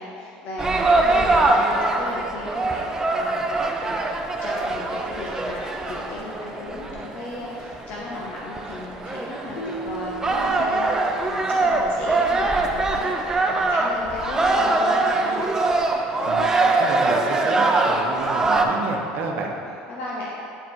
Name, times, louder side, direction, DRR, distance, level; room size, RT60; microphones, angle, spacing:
voice 1, 0.0-15.5 19.6-20.3, left 2 dB, 50° left, -4 dB, 0.9 m, -35 dB
sound 1, 0.6-18.7, right 2 dB, 15° right, 0.5 m, -23 dB
Keyboard (musical), 9.6-12.4, right 2 dB, 90° left, 1.2 m, -37 dB
voice 2, 16.8-19.6, right 3 dB, 55° right, 1 dB, 0.9 m, -29 dB
8.9 x 4.1 x 4.5 m, 2.6 s
cardioid pair, 130°, 4 cm